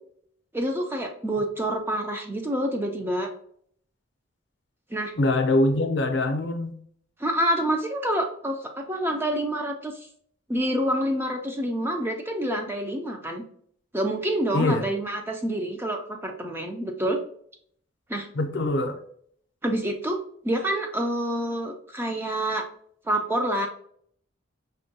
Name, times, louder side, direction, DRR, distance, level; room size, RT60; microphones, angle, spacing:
voice 1, 0.5-3.3 4.9-5.1 7.2-10.1 10.5-13.4 13.9-17.2 18.1-18.3 19.6-20.2 20.4-22.6 23.1-23.7, right 1 dB, 10° right, 3 dB, 0.3 m, -27 dB
voice 2, 5.1-6.7 14.5-14.8 18.3-19.0, left 2 dB, 60° left, 6 dB, 0.5 m, -23 dB
5.3 x 2.2 x 2.7 m, 0.62 s
head